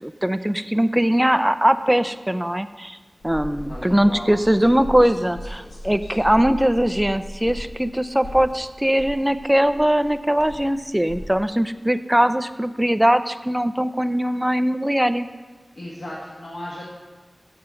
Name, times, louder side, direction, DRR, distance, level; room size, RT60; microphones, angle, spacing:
voice 1, 0.0-3.0 3.2-15.3, equal, 10° right, 11 dB, 0.4 m, -20 dB
sound 1, 3.2-11.4, equal, 75° left, 1.2 m, -37 dB
voice 2, 3.7-4.3 4.6-4.7 15.7-16.9, left 1 dB, 60° left, -5 dB, 1.5 m, -35 dB
7.1 x 6.8 x 7.6 m, 1.3 s
wide cardioid pair, 70°, 0 cm